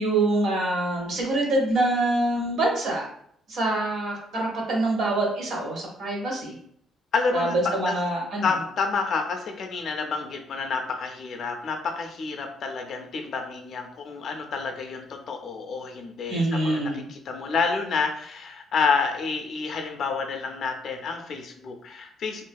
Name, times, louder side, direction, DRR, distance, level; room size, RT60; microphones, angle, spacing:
voice 1, 0.0-3.1 3.5-6.5 7.3-8.5 16.3-17.1, right 2 dB, 60° right, -1 dB, 0.8 m, -25 dB
voice 2, 7.1-8.0 8.4-22.4, left 5 dB, 55° left, 4 dB, 0.4 m, -29 dB
2.6 x 2.4 x 2.2 m, 0.67 s
cardioid pair, 120°, 0 cm